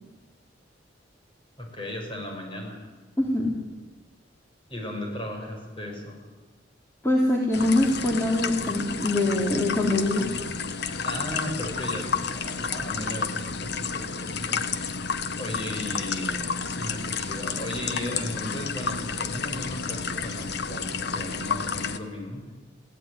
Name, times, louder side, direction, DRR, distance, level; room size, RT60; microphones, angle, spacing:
voice 1, 1.6-2.9 4.7-6.2 11.0-14.6 15.4-22.4, left 1 dB, 30° left, 1 dB, 6.1 m, -36 dB
voice 2, 3.2-3.5 7.0-10.3, left 2 dB, 15° left, -3 dB, 3.3 m, -23 dB
sound 1, 7.5-22.0, left 5 dB, 65° left, 1.3 m, -31 dB
22.5 x 17.0 x 9.8 m, 1.2 s
head